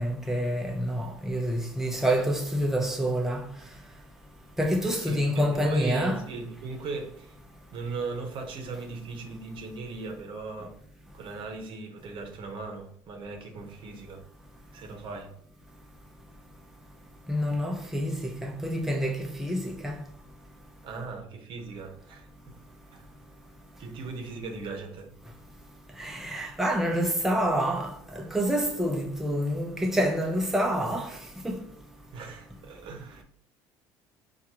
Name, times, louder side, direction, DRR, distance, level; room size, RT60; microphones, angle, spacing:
voice 1, 0.0-3.4 4.6-6.2 17.3-18.1 18.4-19.1 19.4-19.9 26.0-27.9 28.3-31.1, equal, 5° right, 0.7 m, -27 dB
voice 2, 5.0-7.3 7.7-10.8 11.1-14.2 14.7-15.3 20.8-22.3 22.9-23.1 23.8-25.1 32.1-33.2, right 4 dB, 55° right, 0.8 m, -38 dB
4.4 x 2.5 x 2.9 m
supercardioid pair, 75°, 10 cm